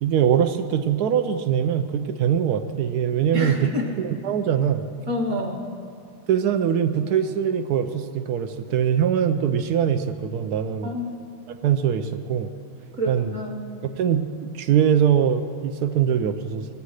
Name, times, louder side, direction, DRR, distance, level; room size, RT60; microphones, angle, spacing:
voice 1, 0.0-3.7 4.0-4.8 6.3-10.9 11.5-12.5 13.1-13.3 14.0-16.7, right 8 dB, 90° right, 9 dB, 0.8 m, -22 dB
voice 2, 3.3-4.0 5.1-5.6 10.8-11.3 13.0-13.6, left 1 dB, 45° right, 3 dB, 1.1 m, -28 dB
22.0 x 8.3 x 6.4 m, 2.6 s
omnidirectional pair, 2.4 m